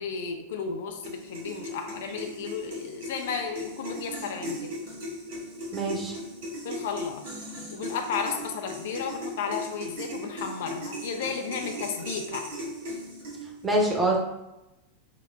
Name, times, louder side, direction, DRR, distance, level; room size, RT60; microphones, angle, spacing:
voice 1, 0.0-4.7 6.6-7.2 7.7-12.5, left 6 dB, 55° left, 4 dB, 0.5 m, -33 dB
sound 1, 1.0-13.6, equal, 55° right, 1.4 m, -38 dB
voice 2, 5.7-6.1 13.6-14.3, right 1 dB, 15° right, -1 dB, 0.9 m, -24 dB
4.6 x 2.2 x 3.7 m, 0.94 s
figure-of-eight pair, 90°, 0 cm